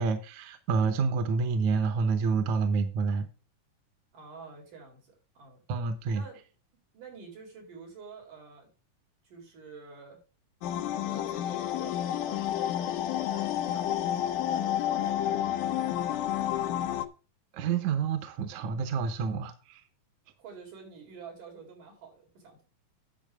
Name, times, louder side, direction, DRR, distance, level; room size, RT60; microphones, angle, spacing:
voice 1, 0.0-3.3 5.7-6.2 17.5-19.8, right 5 dB, 70° right, 2.2 m, -28 dB
voice 2, 4.1-5.6 6.1-6.4 6.9-8.7 9.2-10.2 10.9-15.6 20.4-22.7, right 5 dB, 90° right, 5.9 m, -49 dB
sound 1, 10.6-17.1, left 11 dB, 90° left, 2.4 m, -30 dB
10.5 x 7.5 x 3.5 m
omnidirectional pair, 3.6 m